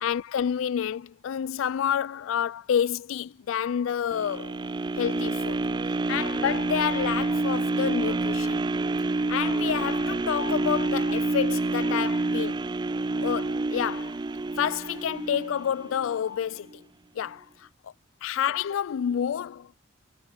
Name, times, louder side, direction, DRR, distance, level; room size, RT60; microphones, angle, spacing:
voice 1, 0.0-4.5 5.0-5.7 6.1-8.6 9.3-12.6 13.2-14.2 14.6-16.8 17.2-17.5 17.8-17.9 18.2-19.7, left 8 dB, 80° left, 0.3 m, -29 dB
sound 1, 4.1-16.2 16.7-16.8, right 2 dB, 20° right, 0.4 m, -28 dB
head